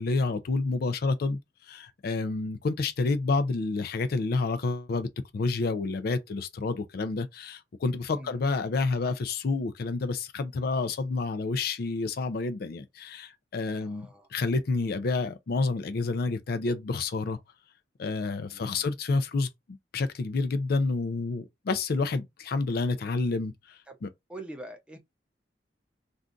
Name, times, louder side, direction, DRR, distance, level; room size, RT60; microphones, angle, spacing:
voice 1, 0.0-1.4 1.7-17.4 18.0-19.5 19.9-24.1, left 3 dB, 55° left, 0.4 m, -29 dB
voice 2, 8.1-8.4 13.7-14.3 18.3-18.9 23.9-24.0 24.3-25.0, right 1 dB, 5° right, 0.6 m, -44 dB
2.5 x 2.3 x 3.6 m
head